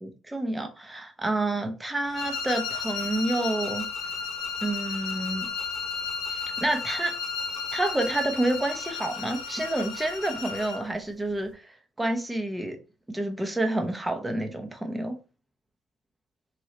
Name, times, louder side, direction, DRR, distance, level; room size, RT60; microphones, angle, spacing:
voice 1, 0.0-3.8 4.6-5.5 6.3-7.1 7.7-12.8 13.1-15.2, right 1 dB, 10° right, 0.7 m, -29 dB
sound 1, 2.1-10.9, left 5 dB, 75° left, 0.8 m, -33 dB
3.2 x 2.6 x 2.8 m
cardioid pair, 95°, 0 cm